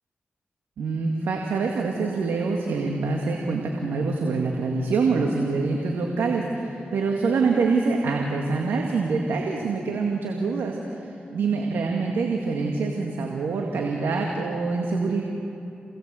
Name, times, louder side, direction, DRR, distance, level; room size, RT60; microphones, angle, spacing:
voice 1, 0.8-11.0 11.3-15.2, right 4 dB, 85° right, 0 dB, 2.2 m, -25 dB
28.0 x 19.0 x 7.8 m, 2.7 s
cardioid pair, 60°, 4 cm